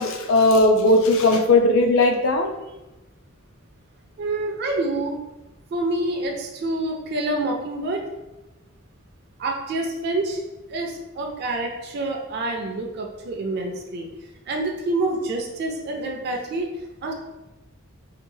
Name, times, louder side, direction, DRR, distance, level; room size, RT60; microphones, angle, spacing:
voice 1, 0.0-2.5, left 2 dB, 65° left, 4 dB, 0.4 m, -17 dB
voice 2, 4.2-5.2 5.7-8.0 9.4-10.4 10.7-14.1 14.5-16.7 17.0-17.1, right 2 dB, 50° right, 1 dB, 0.3 m, -27 dB
2.8 x 2.3 x 2.6 m, 1.0 s
head